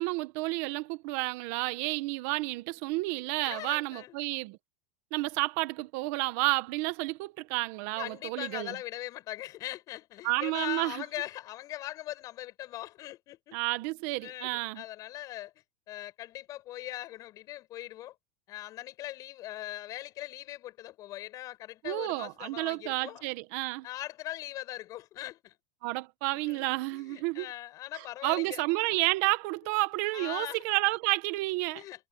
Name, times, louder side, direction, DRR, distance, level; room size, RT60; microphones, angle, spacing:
voice 1, 0.0-4.6 5.1-8.7 10.2-11.0 13.5-14.8 21.8-23.9 25.8-27.5 27.9-31.8, right 21 dB, 50° right, 1.2 m, -31 dB
voice 2, 3.4-4.2 8.0-13.6 14.1-15.5 15.9-18.1 18.5-23.2 23.8-25.5 26.3-28.6 30.1-30.6 31.7-32.1, left 15 dB, 35° left, 7.8 m, -41 dB
supercardioid pair, 155°, 10 cm